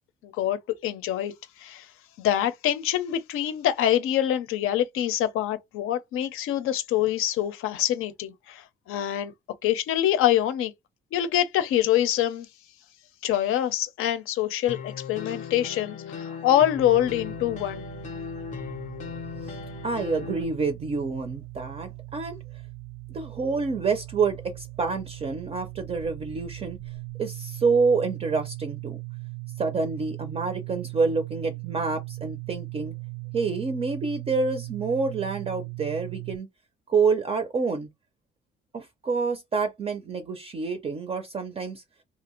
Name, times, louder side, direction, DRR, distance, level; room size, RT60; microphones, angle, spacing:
voice 1, 0.2-1.3 1.6-1.9 2.2-9.3 9.6-10.7 11.1-12.5 13.2-17.9, left 11 dB, 90° left, 0.6 m, -25 dB
sound 1, 14.7-20.4, left 7 dB, 35° left, 0.5 m, -37 dB
sound 2, 16.7-36.4, right 22 dB, 70° right, 0.6 m, -39 dB
voice 2, 19.8-22.4 23.1-26.8 27.2-29.0 29.6-32.9 33.3-36.5 36.9-37.9 38.7-41.8, right 4 dB, 30° right, 0.4 m, -27 dB
2.7 x 2.5 x 2.9 m
cardioid pair, 170°, 21 cm